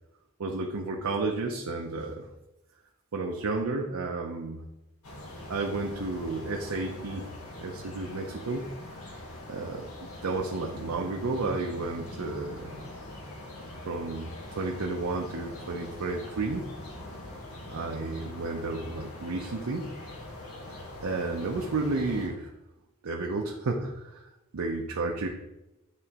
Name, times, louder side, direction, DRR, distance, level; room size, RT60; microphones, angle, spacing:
voice 1, 0.4-2.3 3.1-4.7 5.5-7.3 7.6-8.7 9.0-9.1 9.5-9.9 10.2-12.7 13.9-16.7 17.7-19.9 21.0-22.5 23.0-25.3, right 3 dB, 75° right, 1 dB, 0.6 m, -32 dB
sound 1, 5.0-22.3, left 1 dB, 80° left, 1.5 m, -43 dB
9.1 x 3.8 x 2.9 m, 0.95 s
head